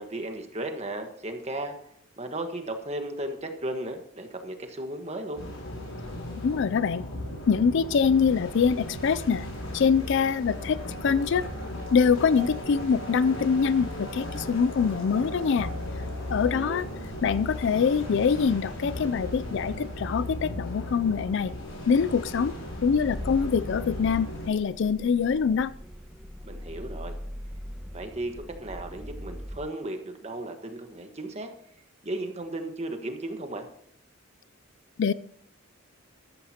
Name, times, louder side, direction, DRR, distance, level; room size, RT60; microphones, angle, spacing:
voice 1, 0.0-1.8 2.2-5.4 16.3-16.9 26.4-27.2 27.9-31.5 32.0-33.7, right 1 dB, 30° right, 5 dB, 1.4 m, -35 dB
sound 1, 5.4-24.5, left 1 dB, 75° left, 6.1 m, -36 dB
voice 2, 6.4-7.0 7.5-9.5 9.7-11.4 11.9-15.7 16.3-16.9 17.2-21.5 21.9-22.5 22.8-25.7 35.0-35.1, left 6 dB, 60° left, 16 dB, 0.4 m, -24 dB
sound 2, 20.3-29.6, equal, ahead, 1.3 m, -43 dB
13.5 x 13.5 x 2.9 m, 0.68 s
head